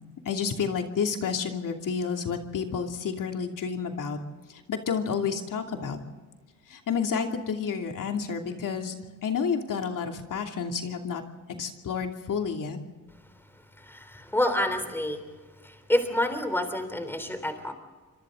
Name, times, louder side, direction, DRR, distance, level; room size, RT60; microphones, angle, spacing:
voice 1, 0.2-4.2 4.5-6.0 6.7-9.0 9.2-11.2 11.5-12.8, left 6 dB, 85° left, 3 dB, 2.8 m, -30 dB
voice 2, 13.8-15.2 15.6-17.7, left 1 dB, 5° left, 7 dB, 3.4 m, -28 dB
27.5 x 26.0 x 3.9 m, 1.4 s
wide cardioid pair, 125°, 32 cm